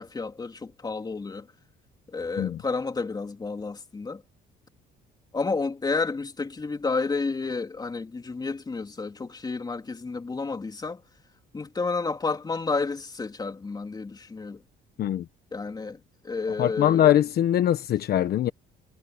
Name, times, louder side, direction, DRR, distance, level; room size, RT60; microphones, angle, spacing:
voice 1, 0.0-1.5 2.1-4.2 5.3-11.0 11.5-14.6 15.5-16.0 16.2-17.1, left 4 dB, 20° left, 3.3 m, -31 dB
voice 2, 16.6-18.5, left 11 dB, 60° left, 1.2 m, -22 dB
cardioid pair, 110°, 18 cm